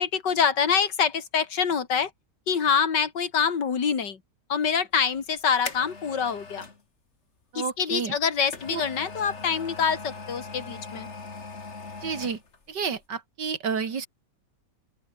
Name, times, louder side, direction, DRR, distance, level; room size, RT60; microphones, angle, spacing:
voice 1, 0.0-2.1 2.5-4.2 4.5-6.7 7.6-11.1, left 6 dB, 80° left, 2.8 m, -25 dB
sound 1, 5.0-6.8 8.0-12.7 13.0-13.1, left 4 dB, 40° left, 2.6 m, -40 dB
voice 2, 7.5-8.1 8.7-8.8 12.0-12.4 12.7-14.1, right 6 dB, 80° right, 3.0 m, -30 dB
open air
omnidirectional pair, 1.8 m